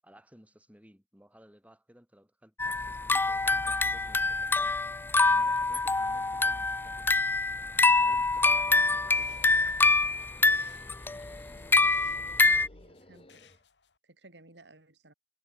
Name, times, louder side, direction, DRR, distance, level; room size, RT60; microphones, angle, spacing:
voice 1, 0.0-4.8 5.2-7.4 8.0-9.9, equal, 10° right, 7.6 m, -58 dB
sound 1, 2.6-12.7, left 3 dB, 10° left, 0.3 m, -25 dB
sound 2, 7.8-14.0, left 3 dB, 80° left, 1.9 m, -58 dB
sound 3, 8.7-13.6, left 2 dB, 35° left, 6.6 m, -56 dB
voice 2, 11.1-11.7 12.7-13.4 14.0-15.1, right 2 dB, 85° right, 4.0 m, -57 dB
head